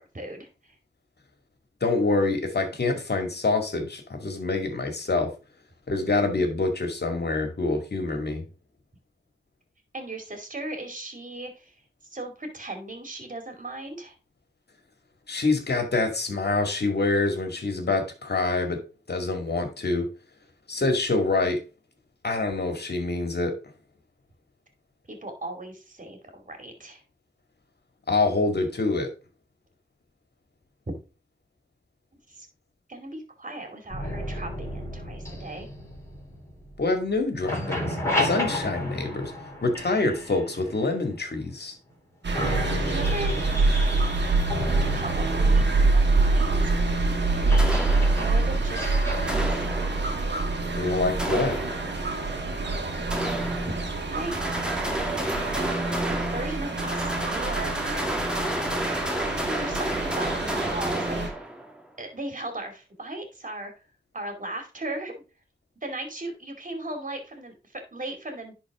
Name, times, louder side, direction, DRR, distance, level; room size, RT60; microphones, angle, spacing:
voice 1, 0.1-0.7 9.9-11.7 12.1-14.1 25.1-27.0 32.3-32.5 32.9-35.7 42.8-43.3 44.6-47.0 47.3-47.7 48.1-49.7 53.6-53.8 54.1-54.3 55.6-58.3 59.4-61.3 62.0-63.7 64.1-65.2 65.8-68.5, right 1 dB, 45° right, 5 dB, 2.7 m, -37 dB
voice 2, 1.8-5.3 5.9-8.4 15.3-18.8 19.1-20.1 20.7-21.6 22.2-23.6 28.1-29.1 36.8-39.3 39.6-41.7 50.7-51.6, left 3 dB, 60° left, 5 dB, 2.1 m, -26 dB
sound 1, 33.9-37.1 37.3-41.3 41.9-42.0 42.3-53.7, left 1 dB, 15° left, 4.7 m, -34 dB
sound 2, 42.2-61.3, right 3 dB, 65° right, 1.7 m, -26 dB
sound 3, 47.6-48.6 49.3-50.3 51.2-52.2 53.1-54.0 54.3-61.8, right 1 dB, 5° right, 1.8 m, -31 dB
10.5 x 4.4 x 3.6 m, 0.31 s
cardioid pair, 50°, 19 cm